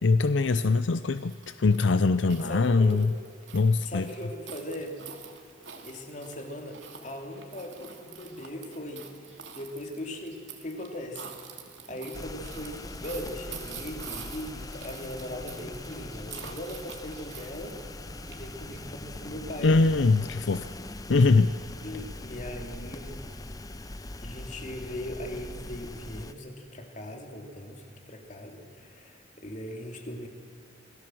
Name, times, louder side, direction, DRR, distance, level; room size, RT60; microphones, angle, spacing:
voice 1, 0.0-3.1 3.5-4.1 19.6-20.7 21.1-21.5, left 3 dB, 80° left, 12 dB, 0.6 m, -22 dB
sound 1, 1.1-18.8, right 7 dB, 80° right, 2.5 m, -47 dB
voice 2, 2.4-3.0 3.8-5.0 5.7-9.1 9.5-11.3 11.9-17.8 18.3-19.8 21.8-23.3 24.2-30.3, left 1 dB, 40° left, 3 dB, 2.9 m, -39 dB
sound 2, 12.1-26.3, left 2 dB, 20° left, 0.7 m, -41 dB
26.5 x 17.0 x 7.7 m, 2.4 s
head